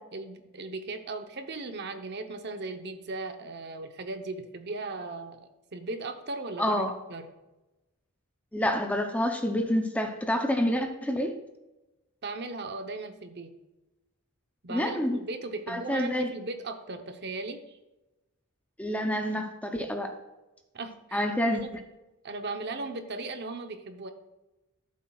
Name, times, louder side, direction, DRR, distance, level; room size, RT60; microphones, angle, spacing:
voice 1, 0.1-6.8 7.1-7.3 12.2-13.5 14.6-17.8 20.7-21.7 22.2-24.1, right 3 dB, 50° right, 7 dB, 0.8 m, -37 dB
voice 2, 6.6-6.9 8.5-11.4 14.7-15.2 15.7-16.3 18.8-20.1 21.1-21.6, equal, 5° left, 5 dB, 0.6 m, -28 dB
13.5 x 7.4 x 2.3 m, 1.0 s
head